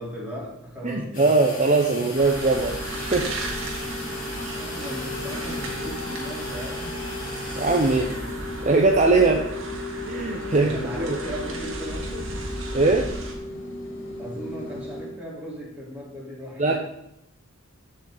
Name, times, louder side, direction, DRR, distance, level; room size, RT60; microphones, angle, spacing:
voice 1, 0.0-1.4 1.9-2.1 4.0-7.0 10.5-12.3 14.2-16.8, equal, 10° right, -6 dB, 4.0 m, -37 dB
voice 2, 0.8-2.8 3.1-3.3 4.4-4.6 7.6-8.1 8.6-9.4 10.1-11.2 12.7-13.0 16.6-16.7, right 3 dB, 35° right, 1 dB, 0.9 m, -20 dB
sound 1, 1.1-13.1, left 2 dB, 40° left, 2.7 m, -40 dB
sound 2, 2.1-13.3, equal, 80° right, 2.4 m, -35 dB
sound 3, 2.5-15.1, left 1 dB, 70° left, 3.4 m, -37 dB
14.5 x 6.0 x 4.1 m, 0.79 s
head